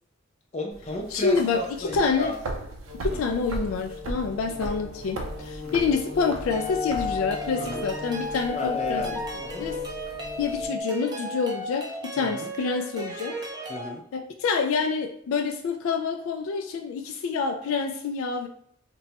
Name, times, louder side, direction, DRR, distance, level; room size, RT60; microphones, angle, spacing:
voice 1, 0.5-2.4 3.1-3.2 4.5-4.8 5.6-5.9 7.5-7.9 8.5-9.7 12.2-12.5 13.7-14.0, left 1 dB, 35° left, 0 dB, 0.6 m, -34 dB
sound 1, 0.7-10.7, right 1 dB, 90° right, 0.5 m, -38 dB
voice 2, 1.1-2.3 3.0-9.0 9.6-9.8 10.4-13.4 14.1-18.5, left 5 dB, 80° left, 5 dB, 0.3 m, -27 dB
sound 2, 2.9-10.8, left 4 dB, 60° left, 1.0 m, -40 dB
sound 3, 6.5-13.9, left 2 dB, 20° right, 0.5 m, -34 dB
3.0 x 2.2 x 2.8 m, 0.66 s
head